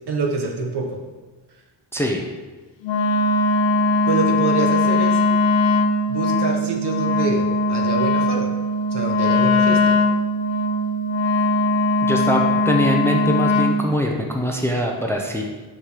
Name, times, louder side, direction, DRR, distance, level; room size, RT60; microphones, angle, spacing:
voice 1, 0.1-1.0 4.1-5.2 6.1-8.5 8.9-10.0, right 3 dB, 60° right, 2 dB, 1.3 m, -25 dB
voice 2, 1.9-2.2 12.0-15.4, equal, 5° left, 0 dB, 0.8 m, -22 dB
Wind instrument woodwind instrument, 2.8-13.8, left 2 dB, 75° left, 0.7 m, -20 dB
6.4 x 6.2 x 5.0 m, 1.3 s
wide cardioid pair, 130°, 45 cm